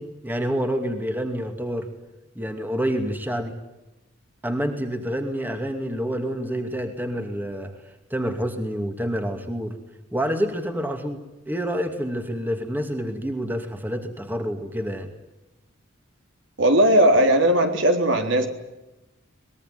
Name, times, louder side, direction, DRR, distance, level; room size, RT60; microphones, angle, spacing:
voice 1, 0.0-1.9 2.3-3.6 4.4-9.8 10.1-15.1, equal, 10° right, 5 dB, 2.5 m, -28 dB
voice 2, 16.6-18.5, right 1 dB, 65° right, 5 dB, 3.8 m, -18 dB
24.0 x 21.5 x 9.5 m, 0.98 s
head